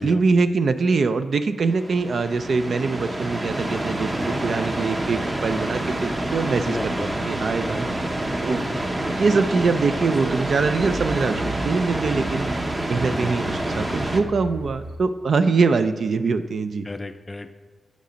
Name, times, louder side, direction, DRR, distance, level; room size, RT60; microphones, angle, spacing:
voice 1, 0.0-6.9 7.2-7.9 8.4-8.6 9.2-12.5 12.9-16.9, right 4 dB, 65° right, 10 dB, 0.4 m, -23 dB
sound 1, 1.6-14.2, right 1 dB, 25° right, 0.7 m, -27 dB
sound 2, 5.5-15.0, right 2 dB, 85° right, 0.8 m, -40 dB
voice 2, 6.6-7.2 13.1-14.0 16.8-17.5, left 2 dB, 25° left, 9 dB, 0.4 m, -34 dB
8.2 x 5.1 x 5.1 m, 1.4 s
wide cardioid pair, 110°, 0 cm